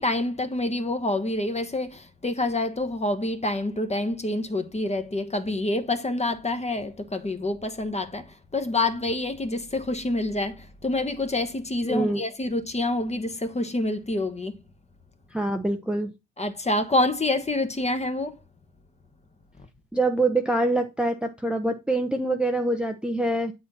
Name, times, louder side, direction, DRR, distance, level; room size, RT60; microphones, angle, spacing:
voice 1, 0.0-8.3 8.5-14.6 16.4-18.3, left 2 dB, 15° left, 1.1 m, -27 dB
voice 2, 11.9-12.2 15.3-16.1 19.9-23.5, right 2 dB, 5° right, 0.8 m, -25 dB
8.4 x 4.3 x 4.1 m
hypercardioid pair, 60°, 37 cm